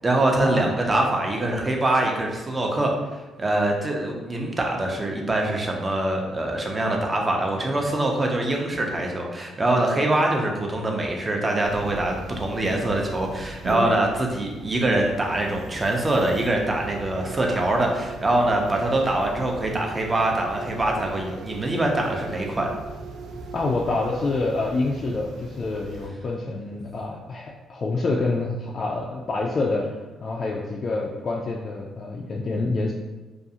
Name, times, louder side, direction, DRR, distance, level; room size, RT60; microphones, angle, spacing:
voice 1, 0.0-2.9 3.4-22.7, right 1 dB, 25° right, 1 dB, 0.5 m, -24 dB
sound 1, 11.6-26.1, right 3 dB, 75° right, 0.4 m, -38 dB
voice 2, 23.5-29.8 30.2-32.9, left 3 dB, 45° left, -2 dB, 0.3 m, -27 dB
2.4 x 2.3 x 2.7 m, 1.2 s
cardioid pair, 90°, 0 cm